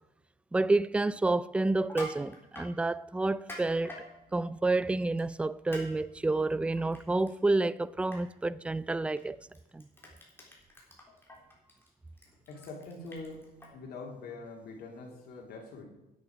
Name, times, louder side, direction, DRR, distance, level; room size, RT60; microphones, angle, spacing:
voice 1, 0.5-3.9 4.3-9.4 9.7-9.8, right 2 dB, 5° right, 0.3 m, -29 dB
Crushing, 1.8-2.7 3.3-4.0 5.2-5.4 5.7-5.9 6.2-7.3 7.7-7.8 8.1-8.2 9.1-9.2 9.5-13.7, equal, 15° left, 3.6 m, -46 dB
voice 2, 12.5-13.5 13.7-15.8, left 3 dB, 70° left, 3.2 m, -44 dB
10.5 x 8.6 x 6.3 m
cardioid pair, 110°, 17 cm